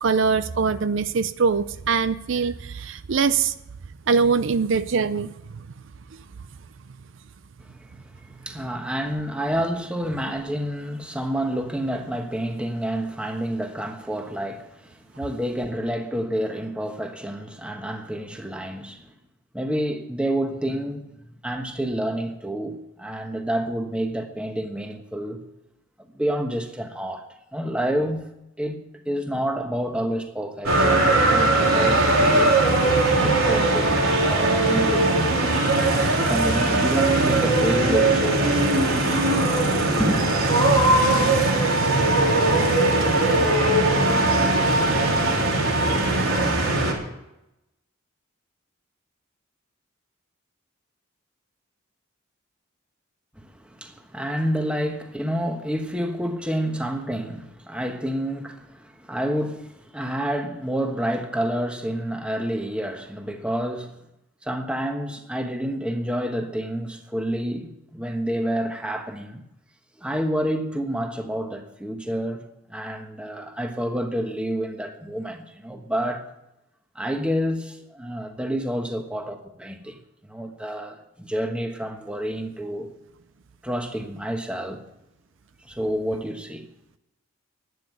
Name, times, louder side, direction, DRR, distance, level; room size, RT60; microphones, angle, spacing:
voice 1, 0.0-3.5 4.1-5.3, right 5 dB, 65° right, 0.5 m, -22 dB
voice 2, 7.6-19.1 19.5-21.0 21.4-25.4 26.1-27.3 27.5-28.2 28.6-32.7 33.2-35.3 35.8-38.7 40.0-40.2 53.4-64.0 64.4-69.4 70.0-76.3 76.9-80.0 80.3-82.9 83.6-84.8 85.6-86.7, equal, 5° right, 1.3 m, -29 dB
sound 1, 30.6-46.9, right 2 dB, 85° right, 3.7 m, -20 dB
11.5 x 9.3 x 9.4 m
head